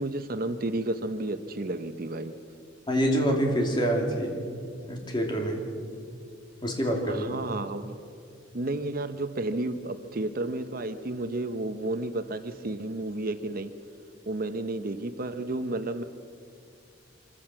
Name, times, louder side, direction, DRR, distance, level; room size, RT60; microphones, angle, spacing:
voice 1, 0.0-2.3 7.1-8.0 8.5-13.7 14.3-16.0, right 2 dB, 45° right, 9 dB, 0.8 m, -32 dB
voice 2, 2.9-4.5 4.9-5.6 6.6-7.3, equal, 25° left, 1 dB, 2.9 m, -26 dB
24.5 x 15.0 x 7.6 m, 2.3 s
head